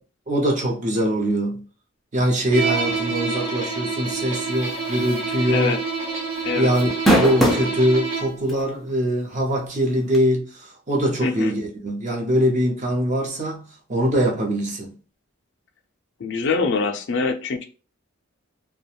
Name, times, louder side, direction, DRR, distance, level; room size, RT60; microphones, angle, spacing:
voice 1, 0.3-1.6 2.1-5.7 6.6-13.6 13.9-14.9, equal, 35° right, 0.6 m, -22 dB
Bowed string instrument, 2.5-8.5, right 4 dB, 65° right, 0.9 m, -27 dB
sound 1, 5.1-5.3 5.7-5.8 6.8-7.7 8.5-8.6 10.1-10.2, equal, ahead, 0.4 m, -18 dB
voice 2, 5.5-5.8 6.4-6.7 11.2-11.5 16.2-17.6, left 4 dB, 60° left, 0.4 m, -24 dB
2.4 x 2.2 x 2.8 m
head